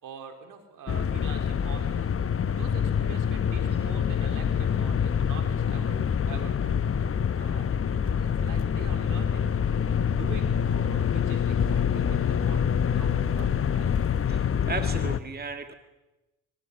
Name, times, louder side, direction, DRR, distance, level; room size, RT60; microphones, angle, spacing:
voice 1, 0.0-2.1 2.5-6.8 7.4-7.7 7.9-14.0, right 7 dB, 70° right, 5 dB, 4.6 m, -45 dB
sound 1, 0.9-15.2, left 7 dB, 40° left, 1.1 m, -26 dB
voice 2, 14.3-15.7, right 4 dB, 30° right, 6 dB, 2.2 m, -36 dB
22.5 x 18.0 x 10.0 m, 1.0 s
supercardioid pair, 65°, 34 cm